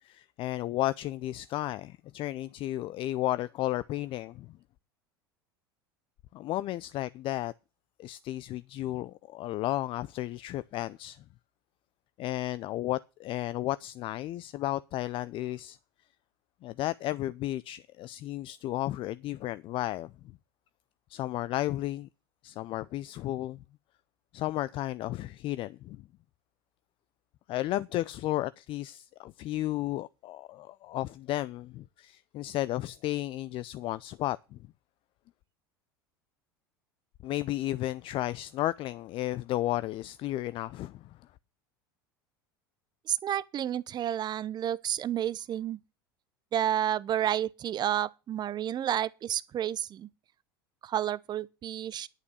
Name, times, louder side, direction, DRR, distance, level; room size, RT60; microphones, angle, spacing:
voice 1, 0.0-4.6 6.3-7.5 8.0-11.2 12.2-15.8 16.6-20.1 21.1-22.1 22.4-23.6 24.3-26.0 27.5-34.6 37.2-41.1, left 15 dB, 45° left, 0.6 m, -33 dB
voice 2, 43.1-45.8 46.5-50.1 50.8-52.1, right 10 dB, 35° right, 0.8 m, -30 dB
11.0 x 7.0 x 6.3 m
hypercardioid pair, 80°, 12 cm